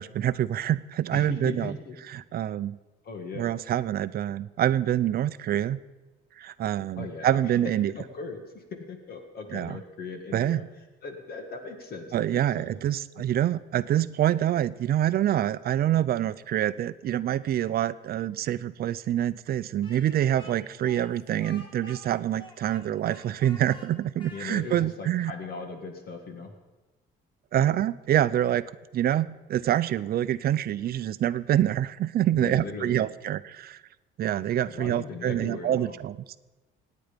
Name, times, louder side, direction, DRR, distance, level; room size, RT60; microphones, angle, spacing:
voice 1, 0.0-1.8 2.1-2.8 3.3-5.8 6.4-7.9 9.5-9.8 10.3-10.6 12.1-25.3 27.5-28.6 28.9-33.8 34.2-36.4, right 11 dB, 50° right, 14 dB, 0.6 m, -26 dB
voice 2, 1.1-2.0 3.0-3.5 7.0-7.5 7.9-10.6 11.0-12.7 24.3-26.5 32.3-33.0 34.7-36.0, left 4 dB, 50° left, 5 dB, 1.9 m, -38 dB
Speech, 19.8-24.9, left 1 dB, 25° left, 2.5 m, -50 dB
26.0 x 9.5 x 5.2 m, 1.2 s
cardioid pair, 145°, 21 cm